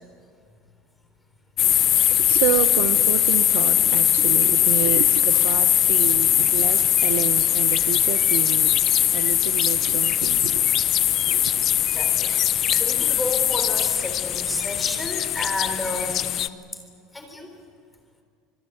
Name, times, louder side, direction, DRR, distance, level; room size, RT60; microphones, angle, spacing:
sound 1, 1.6-16.5, left 11 dB, 35° left, 0.8 m, -20 dB
voice 1, 1.6-10.7 11.3-11.7, right 13 dB, 75° right, 1.1 m, -29 dB
voice 2, 11.9-16.3 17.1-17.5, left 2 dB, 5° left, 3.7 m, -31 dB
26.0 x 22.0 x 8.8 m
cardioid pair, 160°, 0 cm